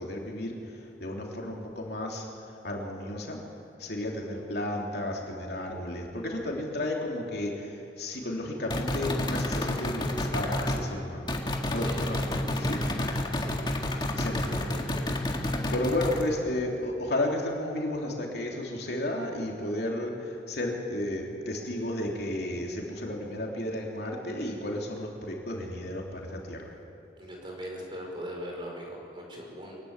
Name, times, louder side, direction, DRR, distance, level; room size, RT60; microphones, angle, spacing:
voice 1, 0.0-3.4 3.8-11.4 11.7-12.8 14.2-14.5 15.7-26.7, left 1 dB, 65° left, -1 dB, 3.3 m, -33 dB
sound 1, 8.7-10.9 11.3-16.3, left 1 dB, 25° left, 1.7 m, -30 dB
voice 2, 11.7-12.2 13.4-13.6 14.5-15.2 27.2-29.8, equal, 30° right, -1 dB, 5.0 m, -40 dB
23.5 x 15.5 x 9.7 m, 2.6 s
head